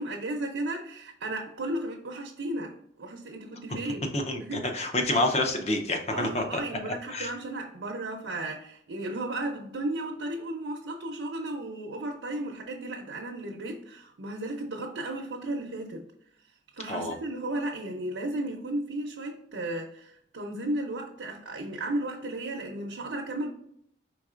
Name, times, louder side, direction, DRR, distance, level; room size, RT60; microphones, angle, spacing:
voice 1, 0.0-4.1 4.4-4.7 6.1-16.0 16.7-23.5, right 1 dB, 80° right, 0 dB, 0.7 m, -34 dB
voice 2, 4.1-6.6 6.9-7.3 16.9-17.2, left 2 dB, 35° left, 4 dB, 0.6 m, -28 dB
4.6 x 3.6 x 2.4 m, 0.70 s
head